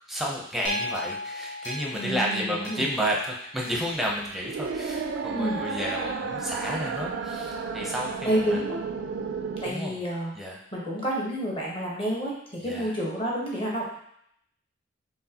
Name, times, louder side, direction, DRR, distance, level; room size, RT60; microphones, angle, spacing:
voice 1, 0.1-8.6 9.6-10.0 10.3-10.6 12.6-12.9, equal, ahead, -3 dB, 0.7 m, -31 dB
sound 1, 0.6-5.0 5.6-5.7, left 1 dB, 60° left, 1.5 m, -38 dB
voice 2, 1.9-2.8 5.3-5.6 8.2-8.8 9.6-10.3 10.7-14.0, equal, 30° left, -4 dB, 1.1 m, -29 dB
sound 2, 3.8-9.7, right 5 dB, 65° right, 0.3 m, -33 dB
4.6 x 3.5 x 2.9 m, 0.70 s
head